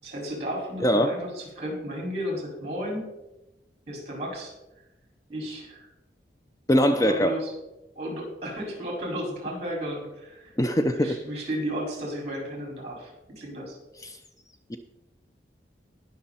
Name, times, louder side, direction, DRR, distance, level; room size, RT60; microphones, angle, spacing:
voice 1, 0.0-3.1 3.9-4.5 5.3-5.9 6.8-7.5 7.9-10.5 10.8-13.8, equal, 35° right, -1 dB, 5.0 m, -34 dB
voice 2, 0.8-1.2 6.7-7.4 10.6-11.2 14.0-14.2 14.7-14.8, equal, 20° left, 8 dB, 0.5 m, -22 dB
19.5 x 6.5 x 4.2 m, 0.96 s
head